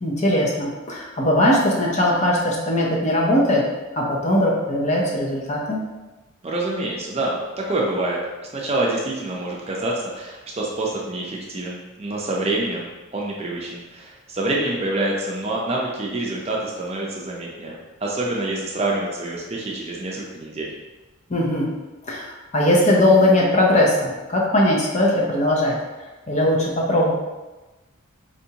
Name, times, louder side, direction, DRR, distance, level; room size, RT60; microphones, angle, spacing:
voice 1, 0.0-3.6 3.9-5.8 21.3-21.7 22.1-25.8 26.3-27.1, left 1 dB, 35° left, -3 dB, 0.7 m, -19 dB
voice 2, 6.4-8.2 8.5-20.7, right 2 dB, 30° right, -3 dB, 0.5 m, -26 dB
4.4 x 2.6 x 2.8 m, 1.1 s
head